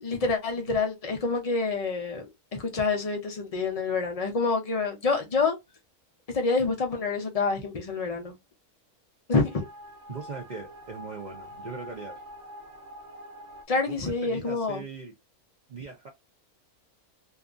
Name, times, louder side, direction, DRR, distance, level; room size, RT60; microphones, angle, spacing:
voice 1, 0.0-5.6 6.3-8.4 9.3-9.6 13.7-14.8, left 4 dB, 65° left, 0.3 m, -27 dB
sound 1, 9.3-13.6, equal, 60° right, 0.8 m, -45 dB
voice 2, 10.1-12.2 13.9-15.1 15.7-16.1, right 4 dB, 80° right, 0.4 m, -40 dB
2.7 x 2.4 x 2.4 m
omnidirectional pair, 1.6 m